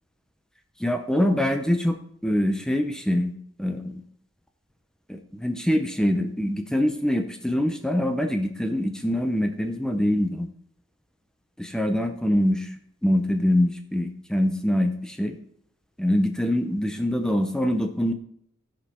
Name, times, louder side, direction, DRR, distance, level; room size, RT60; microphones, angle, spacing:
voice 1, 0.8-2.0 2.2-3.3 3.6-4.0 5.1-10.5 11.6-12.7 13.0-15.4 16.0-18.1, left 1 dB, 5° left, 6 dB, 0.5 m, -24 dB
14.5 x 5.2 x 4.3 m, 0.70 s
head